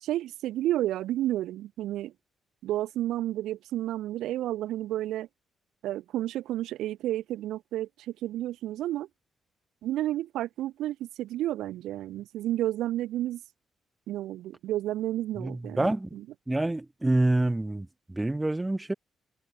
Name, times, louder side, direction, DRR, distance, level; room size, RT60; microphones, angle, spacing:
voice 1, 0.0-2.1 2.6-5.3 5.8-7.9 8.2-9.1 9.8-13.4 14.1-15.9, right 14 dB, 85° right, 0.9 m, -31 dB
voice 2, 15.4-16.1 16.5-18.9, right 2 dB, 15° right, 1.9 m, -27 dB
cardioid pair, 90°, 0 cm